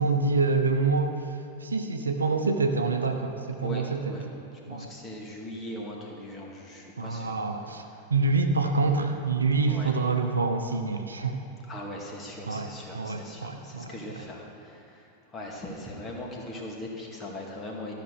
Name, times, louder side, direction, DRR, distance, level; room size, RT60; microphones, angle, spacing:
voice 1, 0.0-1.3 1.6-4.1 4.7-4.9 7.0-7.8 8.1-11.4 12.5-12.7 12.9-13.9, right 3 dB, 75° right, 5 dB, 0.8 m, -26 dB
voice 2, 3.6-4.2 4.7-7.4 7.9-8.0 9.7-9.9 11.7-17.9, left 1 dB, 20° left, -2 dB, 2.2 m, -40 dB
13.5 x 6.3 x 6.5 m, 2.8 s
figure-of-eight pair, 90°, 0 cm